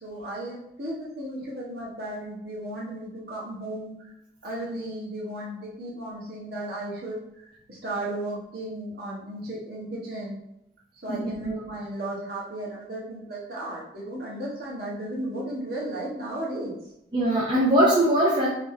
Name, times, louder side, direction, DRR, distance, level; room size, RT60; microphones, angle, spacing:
voice 1, 0.0-3.9 4.4-10.4 11.0-16.8, right 1 dB, 60° right, -5 dB, 1.4 m, -35 dB
voice 2, 11.1-11.5 17.1-18.5, right 1 dB, 25° right, -5 dB, 0.6 m, -21 dB
3.3 x 3.1 x 3.6 m, 0.81 s
head